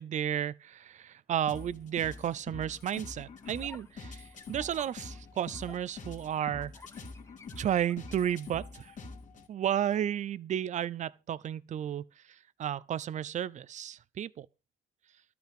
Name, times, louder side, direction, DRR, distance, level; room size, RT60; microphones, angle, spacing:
voice 1, 0.0-6.7 7.6-9.0 9.5-14.5, right 10 dB, 45° right, 0.7 m, -33 dB
sound 1, 1.5-9.5, left 3 dB, 45° left, 2.6 m, -46 dB
sound 2, 2.5-8.5, left 3 dB, 15° left, 1.3 m, -55 dB
12.5 x 5.9 x 7.6 m
cardioid pair, 110°, 17 cm